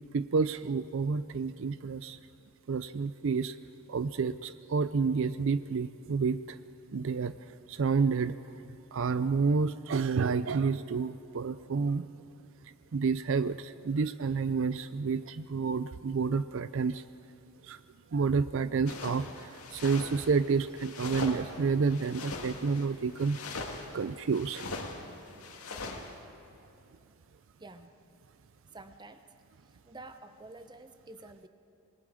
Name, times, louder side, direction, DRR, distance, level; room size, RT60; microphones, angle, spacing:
voice 1, 0.1-2.2 2.7-3.6 3.9-6.6 6.9-12.1 12.6-17.0 17.6-17.8 18.1-23.4 23.9-24.6, right 5 dB, 60° right, 13 dB, 0.4 m, -30 dB
sound 1, 18.9-26.1, left 3 dB, 85° left, 2.2 m, -41 dB
voice 2, 27.6-27.9 28.7-29.2 29.7-31.5, right 2 dB, 20° right, 9 dB, 0.8 m, -49 dB
27.0 x 20.5 x 4.9 m, 2.8 s
head